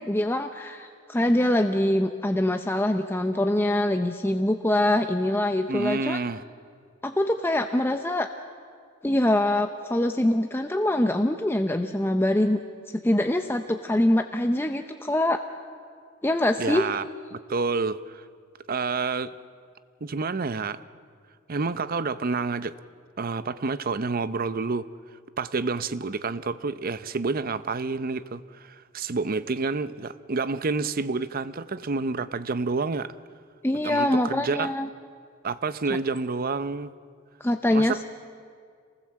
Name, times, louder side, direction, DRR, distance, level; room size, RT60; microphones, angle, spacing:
voice 1, 0.0-6.2 7.0-8.3 9.0-12.6 12.9-15.4 16.2-16.9 33.6-34.9 37.4-38.0, left 1 dB, 10° left, 6 dB, 0.6 m, -24 dB
voice 2, 5.7-6.4 16.6-17.0 17.3-18.3 18.7-19.3 20.0-20.8 21.5-22.7 23.2-24.9 25.4-33.1 33.7-34.7 35.4-36.9 37.7-38.0, right 4 dB, 45° right, 14 dB, 0.6 m, -29 dB
27.0 x 19.5 x 7.5 m, 2.1 s
head